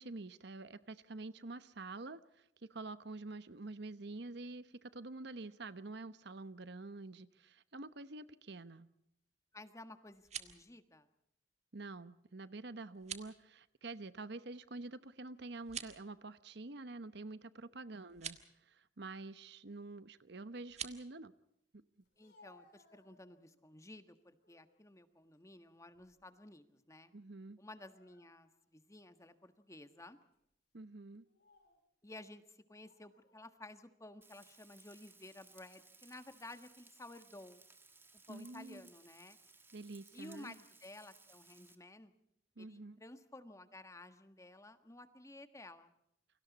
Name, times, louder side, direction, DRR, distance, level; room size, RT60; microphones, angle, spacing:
voice 1, 0.0-2.4 2.7-8.9 11.7-18.4 18.7-21.3 27.1-27.6 30.7-31.3 38.3-38.9 39.7-40.5 42.6-43.0, right 2 dB, 65° right, 13 dB, 1.0 m, -47 dB
voice 2, 9.5-11.1 22.2-27.1 27.6-30.2 32.0-37.6 38.3-39.4 40.1-42.1 42.6-45.9, left 2 dB, 15° left, 9 dB, 1.5 m, -54 dB
sound 1, 10.1-10.7 12.9-13.3 15.6-16.1 18.1-18.4 20.7-21.0, right 8 dB, 40° right, 1.6 m, -45 dB
Speech, 22.0-23.6 24.1-24.7 25.2-26.4 26.6-26.9 27.6-28.6 29.2-29.3 30.1-30.4 31.1-31.8 32.7-33.4, left 2 dB, 60° left, 6.6 m, -68 dB
Frying (food), 34.2-41.7, right 3 dB, 15° right, 2.0 m, -62 dB
29.0 x 24.5 x 4.2 m, 0.75 s
head